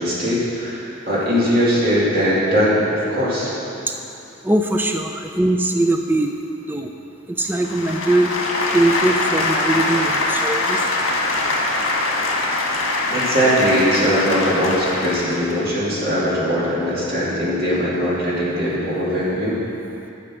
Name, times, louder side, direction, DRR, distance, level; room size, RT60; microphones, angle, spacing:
voice 1, 0.0-3.5 13.1-19.6, equal, 45° right, -7 dB, 2.6 m, -20 dB
voice 2, 4.4-6.3 6.7-6.9 7.4-8.3 8.7-10.8, right 1 dB, 10° right, 4 dB, 0.4 m, -20 dB
sound 1, 7.5-15.5, left 2 dB, 80° left, 1.5 m, -23 dB
11.0 x 6.5 x 6.1 m, 2.8 s
head